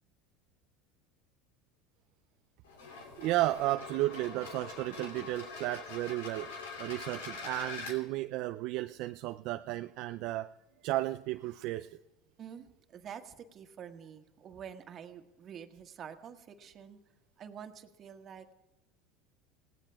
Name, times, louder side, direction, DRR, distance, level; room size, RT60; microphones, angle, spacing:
sound 1, 2.6-8.0, left 4 dB, 90° left, 2.9 m, -44 dB
voice 1, 3.2-6.5 6.8-10.5 10.8-11.9, right 17 dB, 65° right, 9 dB, 0.4 m, -33 dB
voice 2, 12.4-17.0 17.4-18.5, right 8 dB, 40° right, 6 dB, 1.6 m, -48 dB
28.5 x 17.5 x 2.3 m, 1.0 s
supercardioid pair, 100°, 0 cm